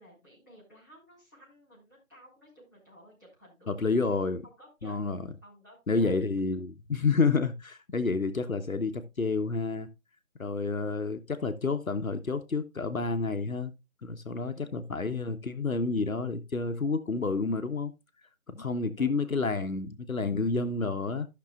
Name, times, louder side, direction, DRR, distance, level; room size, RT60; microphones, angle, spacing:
voice 1, 0.0-4.2 4.6-5.0 5.4-6.1 14.5-15.0 18.7-19.7, equal, 15° right, 3.8 m, -55 dB
voice 2, 3.7-4.4 4.8-5.2 5.9-9.9 10.4-13.7 14.0-17.9 18.5-21.3, left 4 dB, 75° left, 0.9 m, -29 dB
15.0 x 6.0 x 2.3 m
figure-of-eight pair, 175°, 42 cm